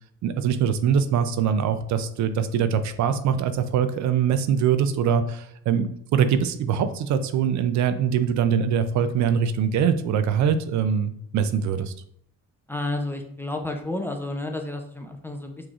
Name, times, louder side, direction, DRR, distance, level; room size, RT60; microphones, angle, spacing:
voice 1, 0.2-11.9, right 7 dB, 65° right, 11 dB, 0.5 m, -23 dB
voice 2, 12.7-15.7, left 2 dB, 5° left, 3 dB, 0.4 m, -31 dB
6.1 x 3.2 x 2.4 m, 0.68 s
cardioid pair, 120°, 31 cm